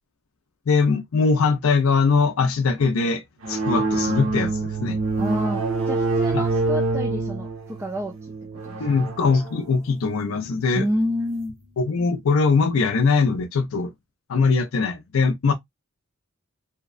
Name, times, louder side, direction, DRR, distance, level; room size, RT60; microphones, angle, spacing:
voice 1, 0.7-3.2 3.5-5.0 6.3-6.4 8.8-10.9 11.8-13.9 14.3-15.5, left 4 dB, 80° left, 0.5 m, -21 dB
sound 1, 3.4-11.5, right 3 dB, 80° right, 0.9 m, -27 dB
voice 2, 5.2-8.1 8.6-8.9 10.8-11.5, equal, 10° right, 0.3 m, -28 dB
2.8 x 2.1 x 2.3 m
head